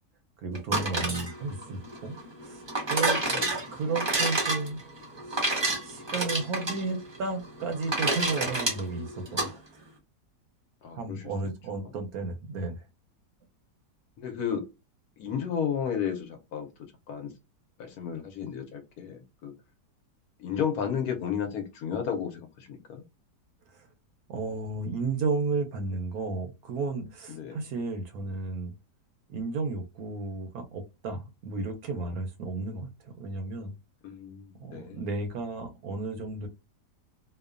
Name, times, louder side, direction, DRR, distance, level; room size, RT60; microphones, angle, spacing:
voice 1, 0.4-2.2 2.4-3.2 3.7-4.8 5.3-9.8 10.9-12.9 23.7-23.9 24.3-28.7 29.3-33.7 34.6-36.5, right 3 dB, 70° right, 1.0 m, -33 dB
sound 1, 0.5-9.5, right 2 dB, 45° right, 0.3 m, -30 dB
voice 2, 3.1-3.5 10.8-11.3 14.2-14.7 15.2-17.3 17.8-19.5 20.4-23.0 27.3-27.6 34.0-35.0, left 8 dB, 70° left, 1.1 m, -33 dB
2.9 x 2.1 x 2.3 m
omnidirectional pair, 1.8 m